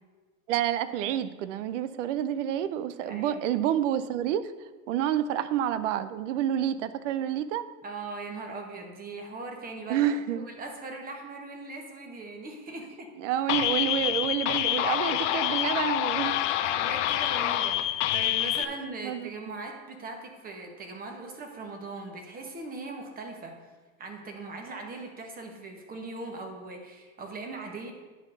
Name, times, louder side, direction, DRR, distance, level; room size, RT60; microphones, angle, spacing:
voice 1, 0.5-4.5 4.9-7.7 9.9-10.5 13.2-16.4 19.0-19.3, right 10 dB, 60° right, 14 dB, 0.7 m, -28 dB
voice 2, 3.0-3.4 7.8-13.1 16.5-23.6 24.0-27.9, right 3 dB, 20° right, 3 dB, 1.4 m, -40 dB
sound 1, 13.5-18.6, left 13 dB, 55° left, 0.7 m, -27 dB
9.5 x 4.1 x 6.7 m, 1.3 s
hypercardioid pair, 125°, 42 cm